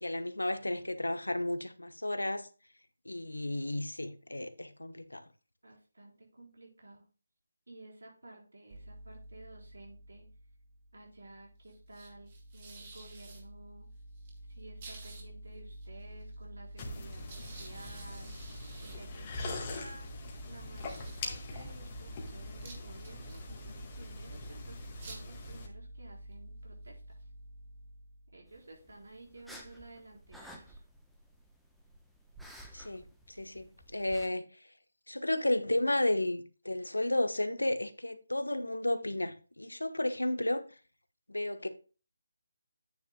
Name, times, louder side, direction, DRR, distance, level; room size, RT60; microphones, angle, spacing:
voice 1, 0.0-2.5 3.0-5.2 32.7-34.5 35.1-40.6 41.3-41.7, left 1 dB, 90° left, 1.0 m, -33 dB
voice 2, 5.6-7.0 7.7-10.3 10.9-13.9 14.5-18.4 18.8-20.1 20.4-27.3 28.3-30.8, right 2 dB, 75° right, 4.3 m, -53 dB
sound 1, 8.7-28.6, right 1 dB, 35° right, 2.5 m, -48 dB
sound 2, 16.8-25.7, left 3 dB, 25° left, 1.8 m, -44 dB
sound 3, 28.5-34.3, equal, ahead, 0.9 m, -53 dB
9.5 x 9.3 x 2.2 m
figure-of-eight pair, 155°, 0 cm